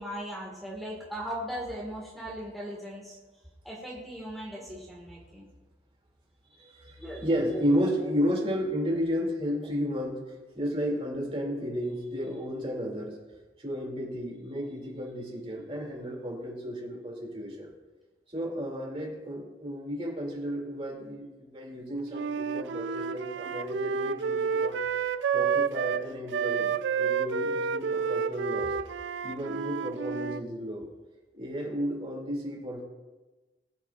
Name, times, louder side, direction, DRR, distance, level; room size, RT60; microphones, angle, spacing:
voice 1, 0.0-3.2 3.6-5.5 7.0-7.6, equal, ahead, -4 dB, 1.6 m, -38 dB
voice 2, 6.5-10.2 10.5-13.2 13.6-17.7 18.3-24.7 25.3-26.7 27.0-28.7 29.2-30.9 31.3-32.8, equal, 30° right, -2 dB, 2.5 m, -32 dB
Wind instrument woodwind instrument, 22.1-30.4, right 6 dB, 90° right, 0.4 m, -30 dB
21.0 x 8.0 x 2.4 m, 1.2 s
head